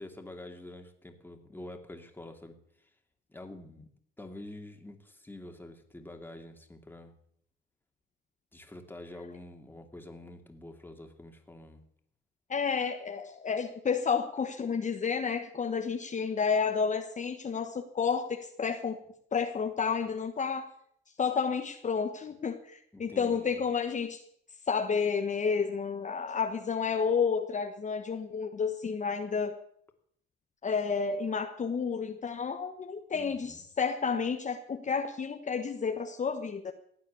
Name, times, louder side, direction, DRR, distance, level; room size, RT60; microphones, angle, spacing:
voice 1, 0.0-2.9 3.3-3.9 4.2-7.1 8.5-11.8 22.9-23.6 33.1-33.6, left 1 dB, 10° left, 4 dB, 2.7 m, -47 dB
voice 2, 12.5-19.0 19.3-20.7 21.2-24.2 24.7-29.6 30.6-36.7, left 6 dB, 40° left, 5 dB, 1.3 m, -31 dB
16.0 x 9.1 x 8.5 m, 0.67 s
cardioid pair, 90°, 20 cm